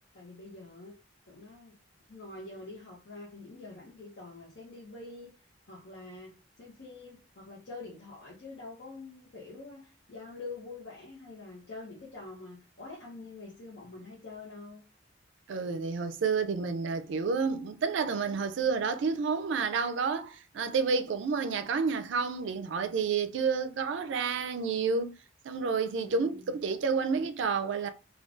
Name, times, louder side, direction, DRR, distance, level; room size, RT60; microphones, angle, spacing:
voice 1, 0.1-0.9 1.3-1.7 2.1-14.8 26.0-26.6, left 3 dB, 65° left, 0.8 m, -46 dB
voice 2, 15.5-25.1 25.5-27.9, right 5 dB, 65° right, 0.4 m, -30 dB
3.6 x 2.3 x 2.4 m
head